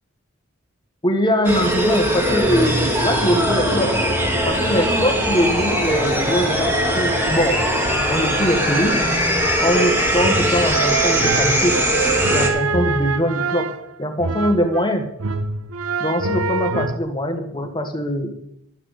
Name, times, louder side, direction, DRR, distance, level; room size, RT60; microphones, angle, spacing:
voice 1, 1.0-3.9 4.4-7.6 8.1-9.1 9.6-11.7 12.3-13.7 14.0-15.1 16.0-18.3, equal, 20° left, 5 dB, 1.4 m, -22 dB
sound 1, 1.4-12.5, equal, 10° right, 2.0 m, -20 dB
sound 2, 9.7-14.9 15.2-17.0, right 4 dB, 70° right, 0.7 m, -25 dB
12.0 x 5.9 x 8.2 m, 0.77 s
head